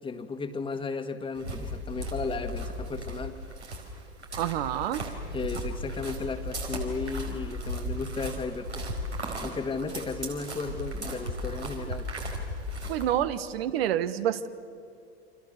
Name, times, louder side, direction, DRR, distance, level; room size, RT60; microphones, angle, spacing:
voice 1, 0.0-3.4 5.3-8.9 9.4-12.1, left 4 dB, 15° left, 6 dB, 1.7 m, -34 dB
sound 1, 1.3-13.2, equal, 85° right, 4.4 m, -36 dB
voice 2, 4.4-5.0 12.9-14.5, right 11 dB, 60° right, 12 dB, 1.4 m, -28 dB
29.0 x 26.5 x 6.7 m, 2.4 s
figure-of-eight pair, 85°, 33 cm